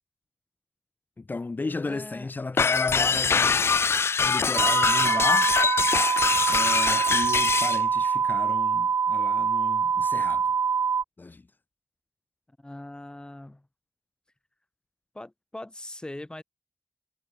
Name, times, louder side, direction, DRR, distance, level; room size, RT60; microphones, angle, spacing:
voice 1, 1.2-3.7 4.2-5.5 6.5-10.4 11.2-11.4, left 3 dB, 45° left, 3.4 m, -34 dB
voice 2, 1.8-2.3 12.5-13.7 15.1-16.4, left 1 dB, 20° left, 4.2 m, -41 dB
sound 1, 2.6-7.8, left 5 dB, 65° left, 0.5 m, -23 dB
sound 2, 4.6-11.0, right 6 dB, 75° right, 0.3 m, -24 dB
wide cardioid pair, 70°, 5 cm